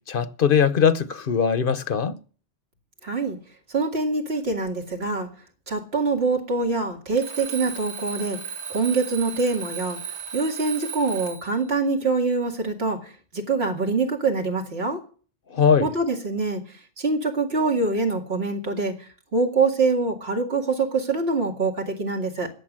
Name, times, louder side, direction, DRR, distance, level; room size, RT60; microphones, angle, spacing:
voice 1, 0.1-2.1 15.5-15.9, left 7 dB, 60° left, 1.0 m, -20 dB
voice 2, 3.0-3.4 3.7-5.3 5.7-8.4 8.7-10.0 10.3-15.0 15.8-18.9 19.3-22.5, right 3 dB, 70° right, 2.5 m, -24 dB
Alarm, 7.2-11.6, right 7 dB, 90° right, 3.7 m, -35 dB
17.0 x 7.0 x 7.4 m
omnidirectional pair, 1.1 m